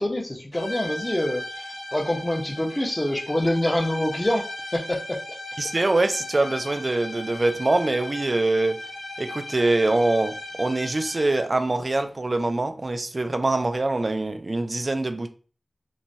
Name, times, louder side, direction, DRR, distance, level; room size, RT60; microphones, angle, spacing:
voice 1, 0.0-1.4 1.9-5.2, left 1 dB, 20° left, 0.7 m, -25 dB
sound 1, 0.5-11.6, left 1 dB, 55° left, 0.7 m, -37 dB
voice 2, 5.6-8.8 9.2-15.3, right 2 dB, 45° right, 0.3 m, -24 dB
3.1 x 2.2 x 2.6 m
wide cardioid pair, 60°, 0 cm